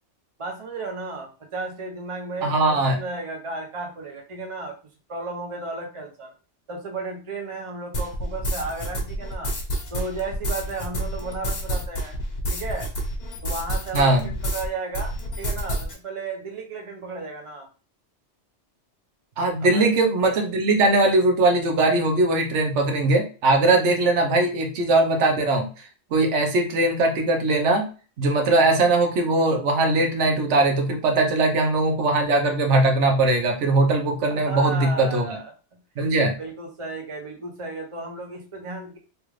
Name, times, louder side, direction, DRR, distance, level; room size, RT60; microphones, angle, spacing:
voice 1, 0.4-4.7 5.1-6.3 6.7-9.5 9.9-12.2 12.5-12.9 13.4-17.7 19.6-19.9 34.3-35.5 36.4-39.0, right 3 dB, 30° right, 2 dB, 0.8 m, -34 dB
voice 2, 2.4-3.0 13.9-14.3 19.4-25.7 26.1-27.9 28.2-35.3 36.0-36.4, right 2 dB, 85° right, 3 dB, 1.1 m, -20 dB
sound 1, 7.9-14.7 14.9-15.9, equal, 60° left, 1.2 m, -29 dB
3.3 x 2.5 x 3.1 m, 0.36 s
omnidirectional pair, 1.2 m